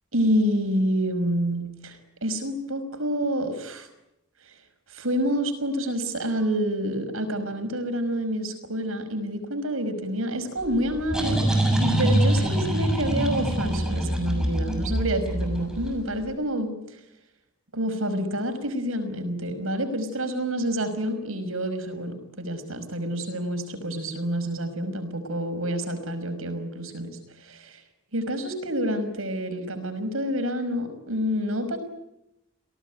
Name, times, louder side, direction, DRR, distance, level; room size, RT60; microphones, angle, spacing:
voice 1, 0.1-3.9 4.9-11.5 11.8-17.0 17.7-27.8 28.1-31.8, equal, 85° right, 9 dB, 5.6 m, -28 dB
sound 1, 10.6-16.2, right 1 dB, 5° right, 6.9 m, -25 dB
28.0 x 18.5 x 9.4 m, 0.86 s
head